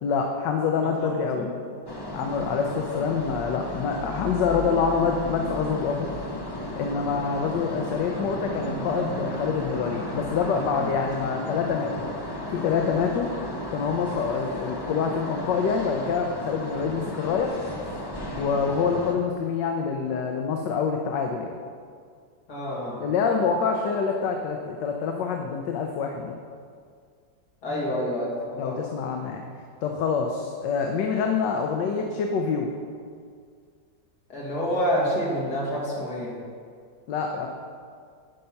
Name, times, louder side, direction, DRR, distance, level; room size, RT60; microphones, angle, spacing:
voice 1, 0.0-1.5 2.1-6.1 6.8-12.0 12.5-13.3 13.7-17.5 18.4-21.5 23.0-26.3 28.6-29.4 29.8-32.7 37.1-37.5, left 5 dB, 75° left, 3 dB, 1.3 m, -26 dB
voice 2, 0.8-1.5 3.7-3.8 22.5-23.0 27.6-28.8 34.3-36.3, equal, 55° left, -4 dB, 2.5 m, -28 dB
sound 1, 1.9-19.2, equal, 35° left, 0.3 m, -34 dB
11.0 x 5.3 x 5.7 m, 2.1 s
omnidirectional pair, 2.0 m